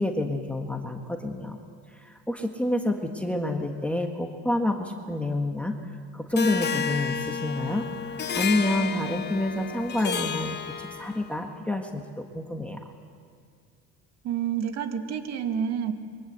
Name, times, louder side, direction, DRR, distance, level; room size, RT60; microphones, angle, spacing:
voice 1, 0.0-1.6 2.0-5.7 6.1-7.9 8.3-12.8, left 1 dB, 5° left, 2 dB, 1.5 m, -28 dB
Harp, 6.4-11.4, left 6 dB, 35° left, 1.4 m, -31 dB
voice 2, 14.2-15.9, right 8 dB, 60° right, 6 dB, 2.4 m, -28 dB
27.5 x 23.0 x 8.1 m, 2.1 s
cardioid pair, 135°, 30 cm